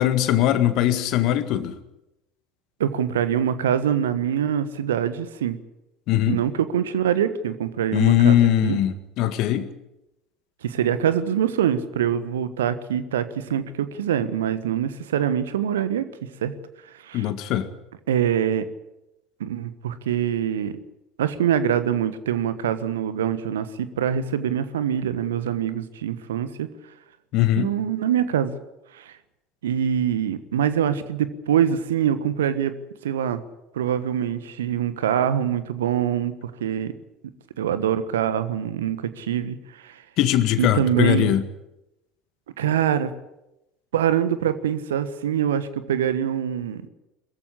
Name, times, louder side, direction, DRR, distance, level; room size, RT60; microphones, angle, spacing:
voice 1, 0.0-1.8 6.1-6.4 7.9-9.7 17.1-17.7 27.3-27.7 40.2-41.4, left 12 dB, 50° left, 11 dB, 1.8 m, -20 dB
voice 2, 2.8-5.6 6.3-8.8 10.6-16.1 16.4-16.5 17.0-17.3 18.1-18.7 19.4-20.8 21.2-26.7 27.5-28.6 28.9-29.1 29.6-32.7 33.0-33.4 33.7-36.9 37.6-40.0 40.6-41.3 42.6-43.1 43.9-46.8, right 9 dB, 70° right, 13 dB, 1.3 m, -24 dB
22.5 x 14.5 x 10.0 m, 0.92 s
figure-of-eight pair, 65°, 0 cm